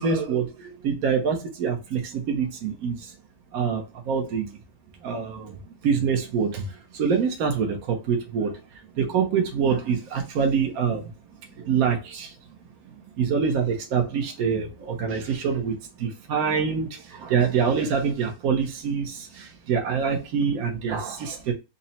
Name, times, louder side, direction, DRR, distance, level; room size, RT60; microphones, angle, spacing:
voice 1, 0.0-3.1 3.5-4.6 5.0-5.5 5.8-6.7 6.9-8.6 9.0-11.0 11.6-12.3 13.2-21.5, right 6 dB, 70° right, 1.2 m, -25 dB
4.0 x 2.0 x 4.0 m
omnidirectional pair, 1.6 m